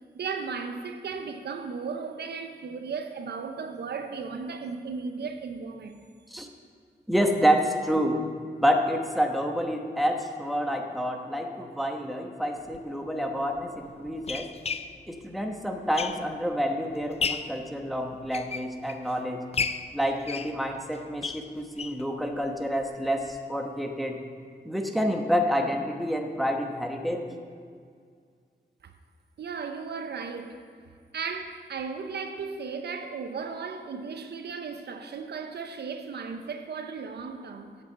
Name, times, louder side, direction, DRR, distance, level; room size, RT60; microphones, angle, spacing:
voice 1, 0.1-6.0 28.8-28.9 29.4-30.6 31.1-37.8, right 5 dB, 75° right, 0.7 m, -35 dB
voice 2, 7.1-8.2 8.6-14.5 15.1-19.4 19.9-24.2 24.6-27.2, equal, ahead, 1.0 m, -28 dB
sound 1, 12.7-12.8 13.6-16.5 16.9-17.6 18.1-19.1 19.5-22.1 22.4-22.5 22.8-22.9 23.3-23.4, left 5 dB, 35° left, 0.4 m, -34 dB
8.3 x 8.2 x 6.8 m
wide cardioid pair, 110°, 17 cm